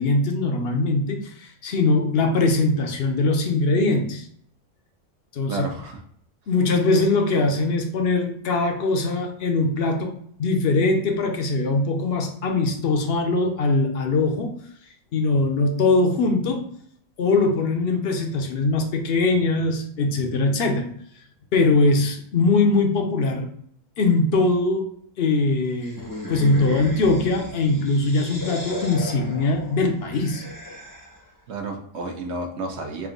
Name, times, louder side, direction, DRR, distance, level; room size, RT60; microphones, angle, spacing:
voice 1, 0.0-4.3 5.3-5.7 6.5-14.6 15.1-16.7 17.2-20.9 21.5-23.5 24.0-24.9 25.2-26.0 26.3-30.4, left 3 dB, 60° left, 5 dB, 0.8 m, -21 dB
voice 2, 5.5-6.0 31.5-33.1, right 2 dB, 60° right, 3 dB, 1.0 m, -31 dB
sound 1, 25.8-31.3, left 2 dB, 20° left, 0.6 m, -36 dB
3.5 x 2.6 x 3.8 m, 0.65 s
omnidirectional pair, 1.3 m